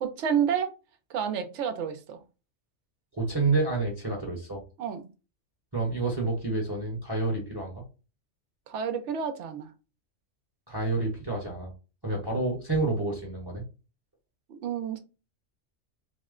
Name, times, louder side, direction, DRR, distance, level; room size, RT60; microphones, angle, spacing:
voice 1, 0.0-0.7 1.1-2.2 4.8-5.0 8.7-9.7 14.5-15.0, right 8 dB, 70° right, 0.9 m, -29 dB
voice 2, 3.1-4.6 5.7-7.8 10.7-11.7 12.0-13.6, right 3 dB, 20° right, 1.0 m, -29 dB
3.6 x 2.1 x 3.6 m
omnidirectional pair, 1.3 m